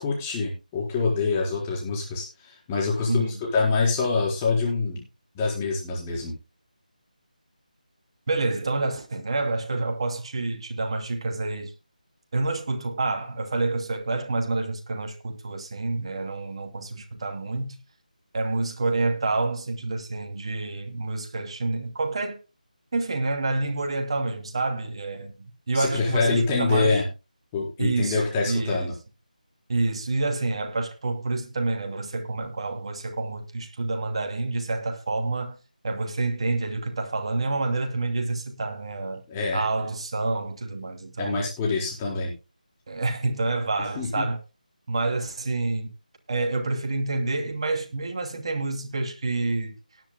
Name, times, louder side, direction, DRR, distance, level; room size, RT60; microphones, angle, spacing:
voice 1, 0.0-5.0 5.3-6.3 25.7-27.0 27.5-28.9 39.3-39.6 41.2-42.3 44.0-44.3, left 4 dB, 15° left, 4.4 m, -25 dB
voice 2, 3.1-3.4 8.3-11.7 12.3-17.8 18.3-22.4 22.9-27.0 27.8-28.9 29.7-35.6 35.8-39.2 39.5-41.5 42.9-44.4 44.9-45.9 46.3-49.8, right 3 dB, 40° right, 2.5 m, -28 dB
19.0 x 10.5 x 2.2 m
figure-of-eight pair, 165°, 5 cm